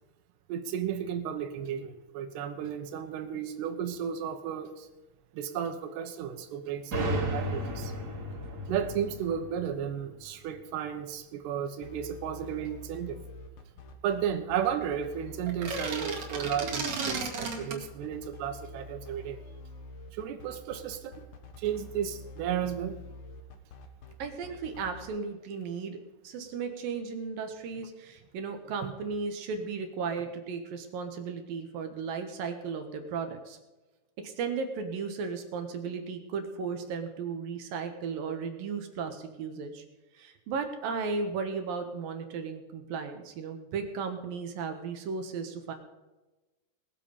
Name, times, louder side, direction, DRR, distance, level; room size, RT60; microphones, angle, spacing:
voice 1, 0.5-4.9 5.3-7.9 8.7-13.2 14.0-19.4 20.1-21.2 21.6-23.0, right 8 dB, 85° right, 7 dB, 3.2 m, -33 dB
sound 1, 6.9-10.6, equal, 25° right, 2.5 m, -34 dB
sound 2, 11.8-25.1, left 2 dB, 65° left, 1.7 m, -47 dB
sound 3, 15.5-17.8, right 4 dB, 45° right, 3.1 m, -33 dB
voice 2, 24.2-26.0 26.2-33.6 34.2-39.8 40.1-45.7, right 5 dB, 65° right, 6 dB, 2.9 m, -35 dB
20.0 x 7.6 x 5.2 m, 1.1 s
omnidirectional pair, 4.7 m